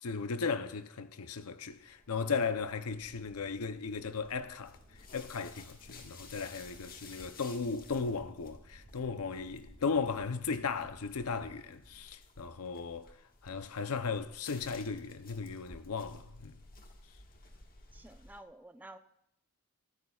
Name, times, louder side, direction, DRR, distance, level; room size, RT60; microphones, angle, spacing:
voice 1, 0.0-4.8 5.1-13.1 13.4-16.6, left 5 dB, 80° left, 0.7 m, -36 dB
sound 1, 1.7-18.4, left 3 dB, 40° left, 1.5 m, -55 dB
sound 2, 2.9-12.0, equal, 65° right, 5.0 m, -60 dB
voice 2, 17.9-19.0, right 1 dB, 10° right, 0.6 m, -51 dB
23.5 x 13.0 x 2.4 m
head